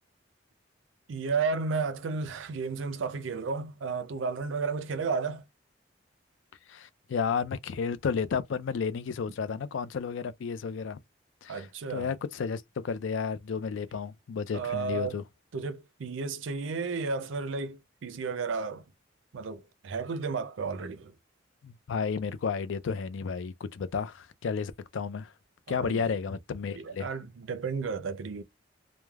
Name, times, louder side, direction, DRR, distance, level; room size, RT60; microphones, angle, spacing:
voice 1, 1.1-5.5 11.5-12.1 14.5-15.2 15.5-18.9 19.3-21.2 25.7-26.1 26.7-28.4, right 4 dB, 85° right, 0.5 m, -33 dB
voice 2, 6.7-11.0 11.4-15.2 21.6-25.3 25.7-27.1, left 6 dB, 80° left, 0.4 m, -32 dB
3.1 x 2.1 x 2.3 m
head